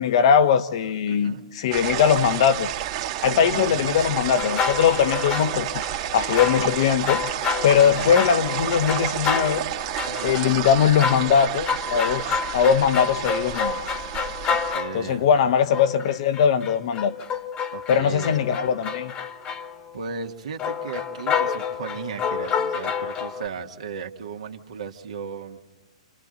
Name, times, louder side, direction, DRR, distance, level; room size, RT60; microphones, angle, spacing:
voice 1, 0.0-2.7 3.2-5.7 6.0-7.2 7.6-9.6 10.2-13.8 14.9-17.1 17.9-19.1, left 8 dB, 55° left, 1.3 m, -20 dB
voice 2, 1.1-1.4 3.5-4.0 7.8-8.1 10.1-10.4 14.5-15.5 17.7-18.3 19.9-25.7, right 6 dB, 75° right, 2.0 m, -36 dB
sound 1, 1.7-14.7, right 12 dB, 45° right, 1.8 m, -30 dB
sound 2, 4.3-5.9 6.2-15.2 15.7-19.9 20.6-23.5, left 6 dB, 25° left, 1.5 m, -29 dB
29.0 x 27.5 x 3.9 m
hypercardioid pair, 120°, 4 cm